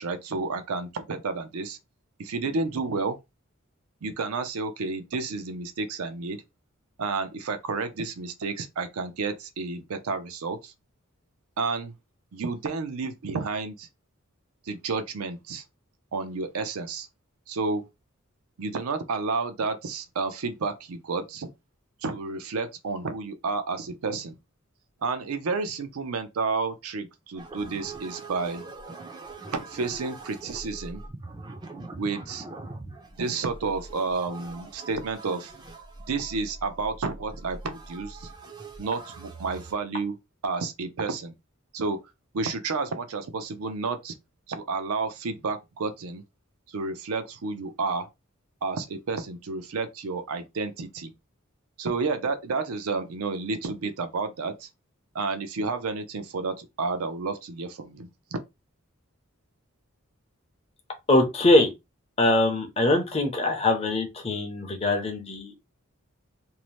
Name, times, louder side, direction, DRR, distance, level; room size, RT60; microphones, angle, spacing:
voice 1, 0.0-1.8 2.2-3.2 4.0-6.4 7.0-10.7 11.6-11.9 12.3-13.9 14.7-15.6 16.1-17.1 17.5-17.8 18.6-21.5 22.0-24.4 25.0-28.6 29.5-31.0 32.0-32.5 33.2-35.5 36.1-38.3 38.8-40.1 40.4-41.3 41.7-42.0 42.3-44.1 44.5-46.2 46.7-48.1 48.6-51.1 51.8-54.7 55.1-58.4, right 4 dB, 90° right, 0.5 m, -31 dB
sound 1, 27.3-39.7, right 3 dB, 20° right, 0.4 m, -43 dB
voice 2, 61.1-61.7 62.2-65.6, left 2 dB, 30° left, 0.6 m, -22 dB
2.7 x 2.0 x 3.0 m
head